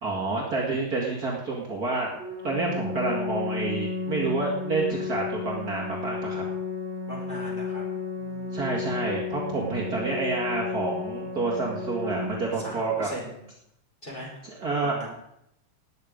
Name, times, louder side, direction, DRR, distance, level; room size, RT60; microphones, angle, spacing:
voice 1, 0.0-6.4 8.5-13.1 14.4-15.0, right 3 dB, 45° right, -3 dB, 2.3 m, -29 dB
Organ, 2.1-13.1, left 4 dB, 20° right, 6.6 m, -33 dB
voice 2, 7.1-7.8 8.2-8.7 12.6-13.4 14.0-14.3 14.8-15.1, equal, 20° left, -4 dB, 5.7 m, -40 dB
19.0 x 8.8 x 5.1 m, 0.78 s
omnidirectional pair, 2.4 m